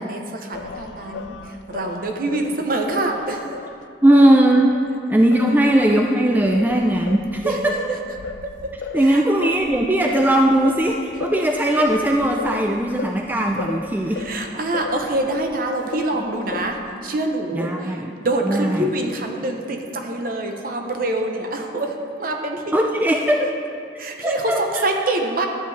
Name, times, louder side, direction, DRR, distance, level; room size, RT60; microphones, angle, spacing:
voice 1, 0.0-3.4 7.4-8.0 8.4-8.7 8.9-9.3 14.1-22.9 23.4-23.5 24.0-25.5, right 2 dB, 50° right, 3 dB, 0.9 m, -26 dB
Singing, 0.5-4.9 5.3-15.6 15.9-16.9, left 5 dB, 80° left, 0.4 m, -35 dB
voice 2, 4.0-4.7 5.1-7.8 8.9-14.2 17.5-18.1 18.5-18.9 22.7-23.4 24.2-24.8, right 1 dB, 10° right, 2 dB, 0.4 m, -18 dB
12.0 x 8.3 x 3.4 m, 2.4 s
head